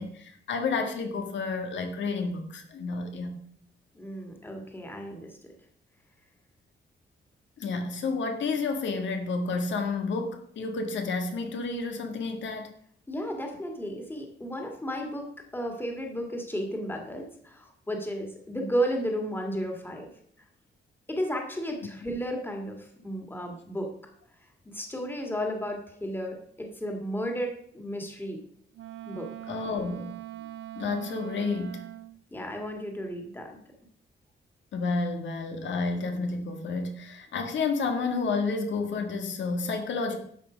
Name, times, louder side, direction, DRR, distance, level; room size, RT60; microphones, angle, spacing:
voice 1, 0.0-3.3 7.6-12.7 29.5-30.1 30.8-31.8 34.7-40.2, left 4 dB, 85° left, 5 dB, 1.7 m, -30 dB
voice 2, 3.9-5.4 13.1-15.3 15.5-20.1 21.1-23.9 24.7-28.4 29.1-29.3 32.3-33.6, equal, 10° left, 2 dB, 1.9 m, -33 dB
Wind instrument woodwind instrument, 28.7-32.2, right 13 dB, 90° right, 0.5 m, -42 dB
12.0 x 7.4 x 5.1 m, 0.63 s
wide cardioid pair, 165°, 19 cm